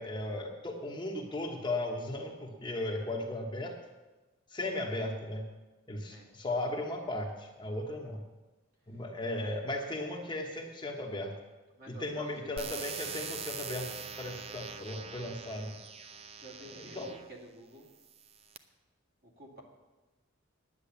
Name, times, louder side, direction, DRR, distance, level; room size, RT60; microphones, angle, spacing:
voice 1, 0.0-3.7 4.5-5.5 5.9-8.2 8.9-11.3 11.9-15.7 16.6-17.1, left 1 dB, 20° left, 1 dB, 1.1 m, -36 dB
voice 2, 11.8-12.8 16.4-17.9 19.2-19.6, left 1 dB, 50° right, -1 dB, 2.5 m, -50 dB
sound 1, 12.6-17.3 18.0-18.6, right 6 dB, 30° right, 0.6 m, -43 dB
10.0 x 9.4 x 7.0 m, 1.2 s
head